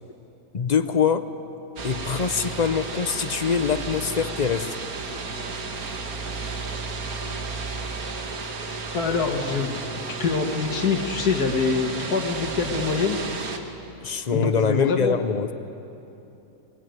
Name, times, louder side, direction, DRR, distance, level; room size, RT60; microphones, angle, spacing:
voice 1, 0.5-1.3 1.8-4.8 14.0-15.5, left 6 dB, 40° left, 11 dB, 0.6 m, -24 dB
sound 1, 1.8-13.6, right 4 dB, 70° right, 2.0 m, -32 dB
voice 2, 8.9-9.8 10.2-13.2 14.3-15.2, left 5 dB, 90° left, 3 dB, 2.1 m, -25 dB
23.0 x 20.0 x 9.2 m, 3.0 s
omnidirectional pair, 1.6 m